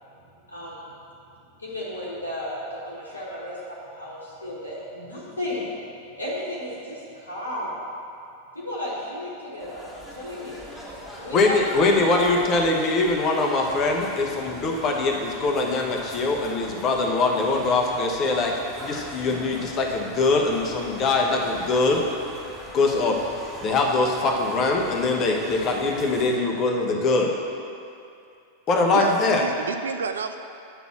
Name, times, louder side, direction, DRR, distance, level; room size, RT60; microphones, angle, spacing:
voice 1, 0.5-0.9 1.6-5.7 6.2-7.7 8.5-10.7 11.1-11.6 12.0-12.6 17.5-17.6, left 1 dB, 80° left, -8 dB, 1.3 m, -34 dB
sound 1, 9.6-26.4, equal, 5° right, 2.1 m, -41 dB
voice 2, 11.3-18.5 18.8-22.0 22.7-27.3 28.7-29.4, left 3 dB, 35° left, 1 dB, 1.0 m, -22 dB
voice 3, 28.9-30.4, right 6 dB, 65° right, 8 dB, 0.4 m, -29 dB
8.1 x 4.1 x 7.0 m, 2.6 s
figure-of-eight pair, 90°, 0 cm